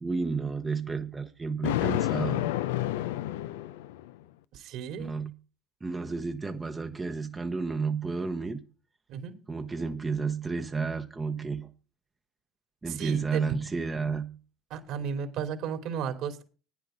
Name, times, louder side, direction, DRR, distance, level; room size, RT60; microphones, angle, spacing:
voice 1, 0.0-2.5 5.0-5.3 5.8-8.6 9.5-11.7 12.8-14.4, right 4 dB, 20° right, 1.0 m, -31 dB
Thunder, 1.6-4.2, left 14 dB, 90° left, 0.6 m, -29 dB
voice 2, 4.5-5.1 9.1-9.3 12.9-13.4 14.7-16.4, right 7 dB, 60° right, 2.9 m, -34 dB
10.5 x 9.7 x 5.0 m
supercardioid pair, 105°, 0 cm